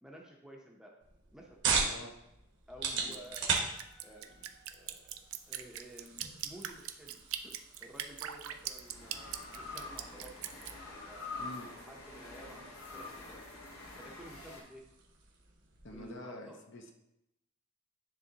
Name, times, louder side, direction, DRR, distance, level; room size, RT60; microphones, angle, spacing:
voice 1, 0.0-0.9 1.3-1.6 2.7-3.6 4.0-5.0 5.4-7.5 7.8-11.4 11.9-13.5 14.0-14.8 15.9-16.6, right 1 dB, 5° right, -1 dB, 0.7 m, -53 dB
sound 1, 1.0-16.1, right 5 dB, 55° right, 1.0 m, -40 dB
voice 2, 1.8-2.2 2.9-3.2 11.4-11.7 15.8-16.9, left 1 dB, 55° left, 2 dB, 0.7 m, -47 dB
Drip, 3.1-10.7, right 10 dB, 75° right, 0.4 m, -41 dB
sound 2, 3.7-5.2 7.1-14.6, left 3 dB, 85° left, 1.3 m, -47 dB
9.9 x 3.4 x 2.8 m, 0.85 s
head